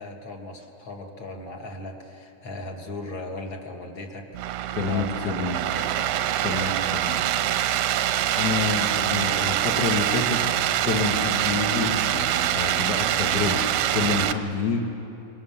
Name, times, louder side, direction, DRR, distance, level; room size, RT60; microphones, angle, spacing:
voice 1, 0.0-4.3 4.8-6.1, left 2 dB, 40° left, 2 dB, 2.0 m, -37 dB
sound 1, 4.3-14.3, right 12 dB, 85° right, 2.7 m, -24 dB
voice 2, 4.7-5.6 6.4-7.2 8.3-10.4 10.8-13.6 13.9-14.8, left 4 dB, 55° left, 1 dB, 1.1 m, -28 dB
28.5 x 24.0 x 7.2 m, 3.0 s
omnidirectional pair, 4.3 m